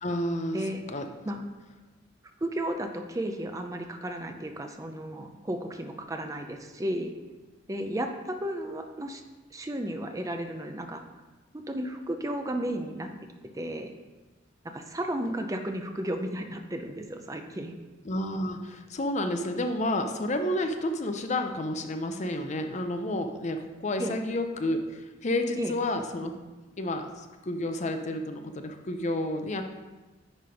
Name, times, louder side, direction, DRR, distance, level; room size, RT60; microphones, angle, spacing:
voice 1, 0.0-1.1 18.0-26.3 26.8-27.1 27.4-29.6, left 1 dB, 40° left, 6 dB, 0.6 m, -30 dB
voice 2, 2.4-7.1 7.7-9.2 9.5-11.0 11.5-13.1 13.5-13.9 14.6-17.7 24.0-24.2 25.6-25.7, right 1 dB, 20° right, 5 dB, 0.5 m, -33 dB
10.0 x 3.4 x 5.2 m, 1.2 s
head